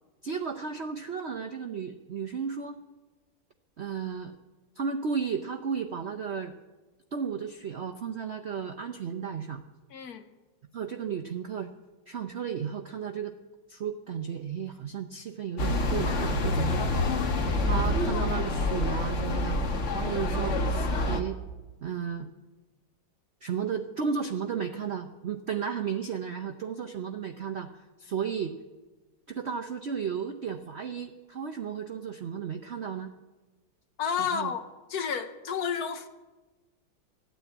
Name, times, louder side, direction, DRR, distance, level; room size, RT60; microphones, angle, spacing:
voice 1, 0.2-2.8 3.8-4.4 4.8-6.5 7.1-9.6 10.7-11.7 12.1-13.4 13.7-17.0 17.7-19.6 19.9-21.4 21.8-22.3 23.4-28.5 29.3-33.1 34.2-34.5, right 7 dB, 60° right, 0.6 m, -34 dB
voice 2, 9.9-10.3 34.0-34.6 34.9-36.1, left 7 dB, 60° left, 1.2 m, -31 dB
sound 1, 15.6-21.2, left 2 dB, 45° left, 1.3 m, -27 dB
14.5 x 9.3 x 8.3 m
omnidirectional pair, 2.0 m